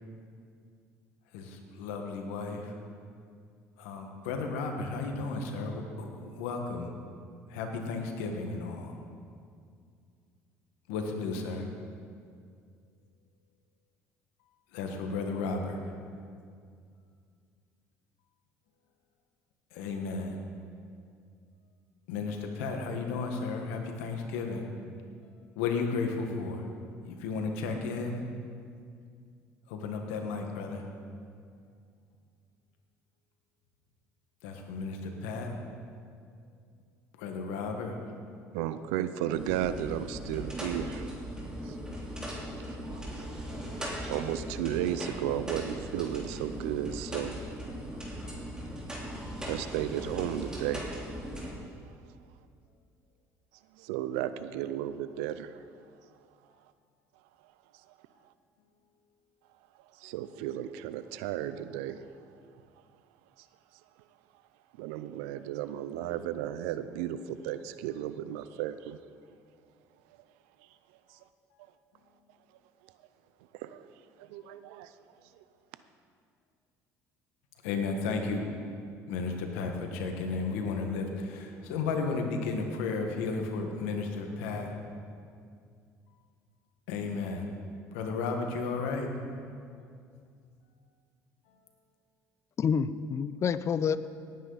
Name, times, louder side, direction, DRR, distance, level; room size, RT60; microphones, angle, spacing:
voice 1, 1.3-2.8 3.8-6.9 7.5-9.0 10.9-11.7 14.7-15.9 19.7-20.4 22.1-24.7 25.5-26.7 27.0-28.2 29.7-30.9 34.4-35.5 37.2-38.1 77.6-78.5 79.1-84.7 86.9-87.5 87.9-89.1, left 4 dB, 90° left, 4 dB, 1.5 m, -33 dB
voice 2, 38.5-41.1 41.6-41.8 42.4-43.6 44.1-47.4 49.5-51.2 53.8-55.6 60.0-62.0 63.4-63.5 64.8-69.0 71.1-71.2 73.5-73.9 74.2-74.9 75.4-75.5, right 11 dB, 90° right, 13 dB, 0.5 m, -34 dB
sound 1, 39.3-51.5, equal, 10° right, 3.5 m, -39 dB
voice 3, 92.6-94.1, left 6 dB, 45° left, 15 dB, 0.5 m, -28 dB
18.0 x 9.4 x 4.1 m, 2.3 s
supercardioid pair, 80°, 7 cm